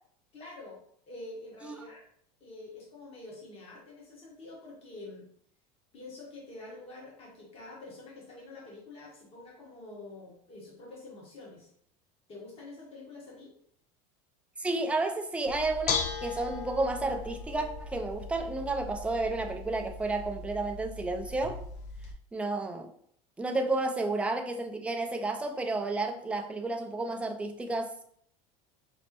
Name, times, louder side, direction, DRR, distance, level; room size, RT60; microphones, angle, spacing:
voice 1, 0.3-0.8 1.1-2.0 2.4-5.2 5.9-11.7 12.3-13.5, left 2 dB, 30° left, -4 dB, 1.2 m, -47 dB
voice 2, 14.6-21.6 22.3-22.9 23.4-28.0, right 2 dB, 5° right, 4 dB, 0.3 m, -31 dB
Bell / Dishes pots and pans, 15.5-22.1, left 5 dB, 65° left, 0.5 m, -38 dB
5.2 x 2.0 x 2.9 m, 0.66 s
supercardioid pair, 130°, 20 cm